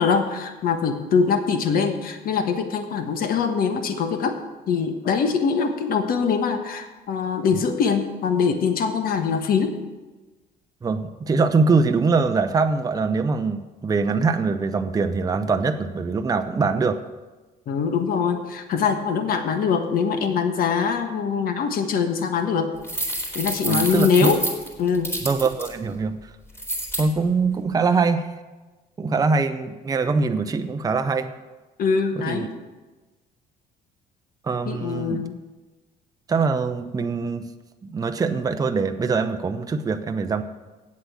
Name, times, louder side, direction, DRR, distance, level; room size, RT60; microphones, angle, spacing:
voice 1, 0.0-4.4 4.7-9.8 17.7-22.7 23.3-24.4 24.8-25.2 31.8-32.5 34.7-35.4, left 6 dB, 60° left, 7 dB, 1.4 m, -23 dB
voice 2, 10.8-17.0 23.7-24.3 25.2-26.2 27.0-28.3 29.0-31.3 32.2-32.5 34.4-35.2 36.3-37.4 37.8-40.4, right 4 dB, 20° right, 8 dB, 0.6 m, -23 dB
sound 1, 22.8-25.7 26.6-27.0, right 1 dB, 15° left, 3.7 m, -28 dB
8.6 x 7.9 x 8.1 m, 1.2 s
cardioid pair, 110°, 17 cm